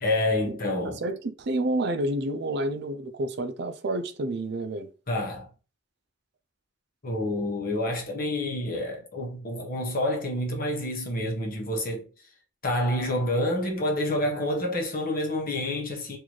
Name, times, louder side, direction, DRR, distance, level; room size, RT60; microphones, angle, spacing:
voice 1, 0.0-1.0 5.1-5.5 7.0-12.1 12.6-16.2, left 1 dB, 50° left, 1.1 m, -28 dB
voice 2, 1.0-4.9, right 1 dB, 60° right, 0.5 m, -29 dB
3.8 x 2.6 x 3.1 m
head